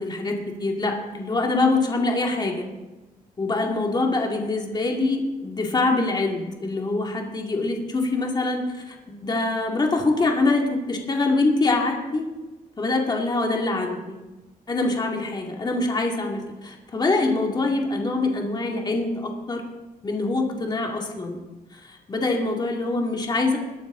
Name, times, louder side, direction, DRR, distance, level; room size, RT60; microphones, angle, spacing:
voice 1, 0.0-2.7 3.4-12.3 12.8-14.2 14.7-19.6 20.0-21.4 21.7-23.6, left 2 dB, 30° left, 1 dB, 2.4 m, -24 dB
21.5 x 11.0 x 3.9 m, 1.1 s
wide cardioid pair, 150°, 15 cm